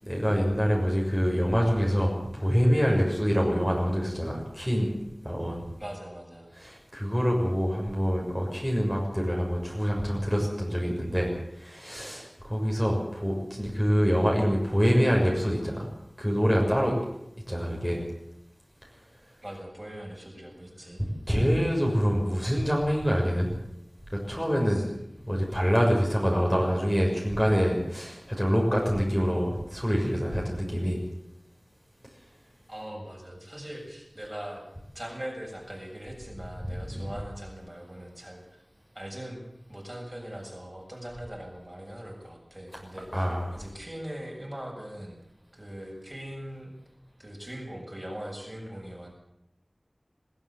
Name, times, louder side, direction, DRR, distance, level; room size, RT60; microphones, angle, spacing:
voice 1, 0.0-4.9 5.2-5.6 6.6-15.9 16.2-17.0 17.5-18.0 21.0-23.5 24.3-24.9 25.2-31.0 36.7-37.1 43.1-43.6, equal, 5° left, -1 dB, 6.4 m, -26 dB
voice 2, 5.8-6.5 19.4-21.0 24.7-24.9 32.7-34.6 34.9-38.6 38.9-39.4 39.7-45.2 45.5-46.7 47.2-49.1, equal, 25° right, 0 dB, 7.3 m, -41 dB
21.5 x 15.0 x 8.8 m, 0.81 s
wide cardioid pair, 45°, 0 cm